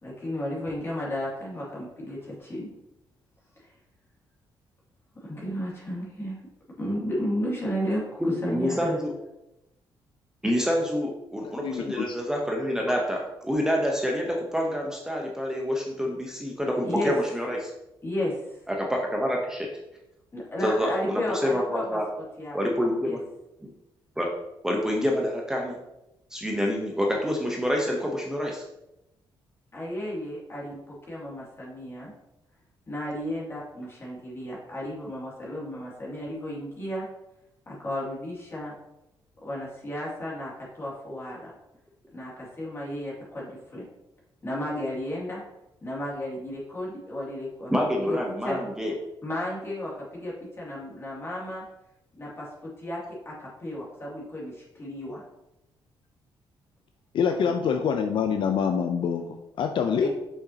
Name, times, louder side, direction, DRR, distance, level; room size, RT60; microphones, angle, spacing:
voice 1, 0.0-2.7 3.6-3.7 5.2-6.4 6.8-9.0 16.8-17.1 18.0-18.6 20.3-22.0 22.4-22.6 23.0-23.2 29.7-32.1 32.9-37.1 37.7-38.7 39.4-41.5 42.1-43.8 44.4-45.4 45.8-47.7 48.0-48.2 48.4-48.6 49.2-51.6 52.2-53.0 53.3-55.2 57.4-57.6 60.0-60.1, left 1 dB, 30° left, -6 dB, 2.4 m, -33 dB
voice 2, 8.2-9.1 10.4-17.7 18.7-19.7 20.6-22.1 22.5-23.2 23.6-23.7 24.2-24.3 24.6-25.8 26.3-28.6 47.7-48.9, equal, 5° right, 0 dB, 0.8 m, -27 dB
voice 3, 11.4-12.1 57.1-60.1, left 7 dB, 65° left, 6 dB, 0.5 m, -26 dB
6.4 x 5.7 x 2.8 m, 0.90 s
cardioid pair, 130°, 9 cm